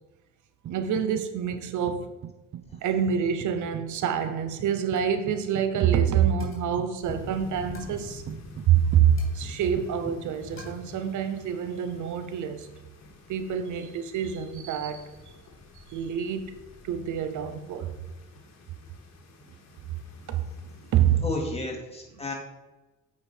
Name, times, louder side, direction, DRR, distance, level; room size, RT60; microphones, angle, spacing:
sound 1, 0.6-1.3 1.5-10.4, right 9 dB, 45° right, 0.4 m, -42 dB
voice 1, 0.7-2.1 2.8-8.2 8.6-12.7 13.3-15.2 15.8-17.9 20.3-20.5 20.7-21.3, right 8 dB, 75° right, 0.8 m, -26 dB
Coin (dropping), 4.2-4.4 4.8-5.1 5.4-5.7 6.4-6.8 7.7-8.1 9.2-10.1 10.6-10.7, left 3 dB, 45° left, 2.9 m, -52 dB
sound 2, 7.0-21.2, left 3 dB, 60° left, 1.6 m, -48 dB
voice 2, 21.2-22.3, left 2 dB, 20° left, 2.1 m, -33 dB
7.9 x 5.3 x 4.3 m
cardioid pair, 90°, 30 cm